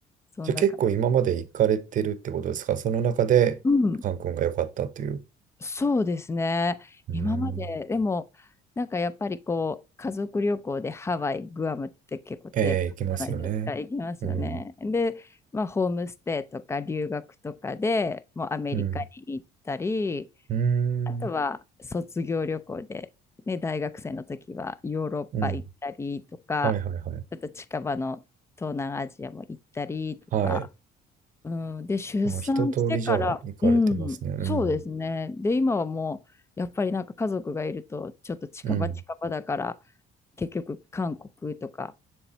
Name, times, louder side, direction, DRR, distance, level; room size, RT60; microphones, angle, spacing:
voice 1, 0.4-3.6 4.0-5.2 7.1-7.6 12.5-13.7 14.2-14.6 18.7-19.0 20.5-21.3 25.3-25.5 26.6-27.2 30.3-30.7 32.2-33.8 34.2-34.7 38.6-39.0, right 8 dB, 50° right, 0.7 m, -26 dB
voice 2, 3.6-4.0 5.6-8.3 8.8-12.8 13.2-15.3 15.5-20.3 21.1-21.6 21.9-23.1 23.5-26.2 26.5-26.7 27.3-28.2 28.6-30.2 30.4-30.6 31.4-34.2 34.4-36.2 36.6-38.9 39.2-39.8 40.4-41.9, left 3 dB, 15° left, 0.4 m, -29 dB
7.0 x 3.4 x 3.9 m
cardioid pair, 110°, 17 cm